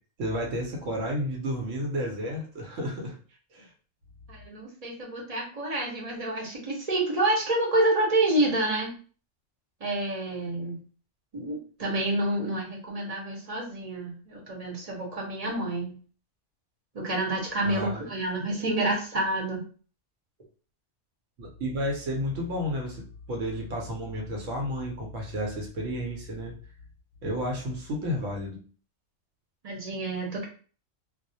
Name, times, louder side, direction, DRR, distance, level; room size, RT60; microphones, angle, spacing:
voice 1, 0.2-3.2 3.5-3.7 17.6-18.0 21.4-26.5 27.2-28.6, equal, 80° right, -1 dB, 1.0 m, -32 dB
voice 2, 4.3-8.9 9.8-10.8 11.3-16.0 16.9-19.6 29.6-30.4, right 1 dB, 35° right, -2 dB, 0.7 m, -28 dB
2.3 x 2.0 x 2.6 m, 0.39 s
omnidirectional pair, 1.3 m